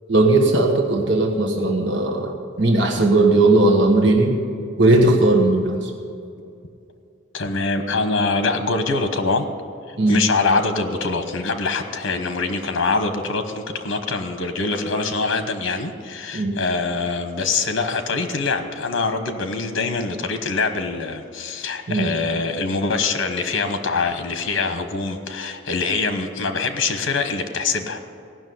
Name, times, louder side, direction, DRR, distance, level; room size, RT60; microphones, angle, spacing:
voice 1, 0.1-4.4 4.8-5.9 10.0-10.2 16.3-16.5 21.9-22.1, right 2 dB, 65° right, 1 dB, 1.4 m, -17 dB
voice 2, 7.3-9.5 9.9-28.0, left 3 dB, 85° left, 7 dB, 1.1 m, -24 dB
17.0 x 6.2 x 9.4 m, 2.5 s
head